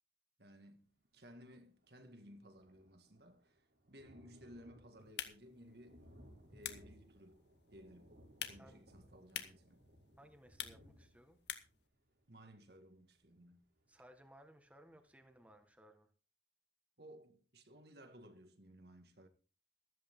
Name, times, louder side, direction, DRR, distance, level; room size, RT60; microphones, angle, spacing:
voice 1, 0.4-3.6 3.9-6.1 6.5-8.1 8.4-9.8 12.3-13.6 17.0-19.3, equal, 65° right, 2.0 m, -58 dB
Thunder, 1.8-14.4 14.9-15.0 15.3-15.4, equal, 80° right, 5.9 m, -63 dB
sound 1, 5.0-11.9, left 9 dB, 80° left, 1.8 m, -50 dB
voice 2, 8.5-8.8 10.2-11.4 13.9-16.1, equal, 10° right, 1.7 m, -62 dB
14.5 x 14.0 x 3.8 m
head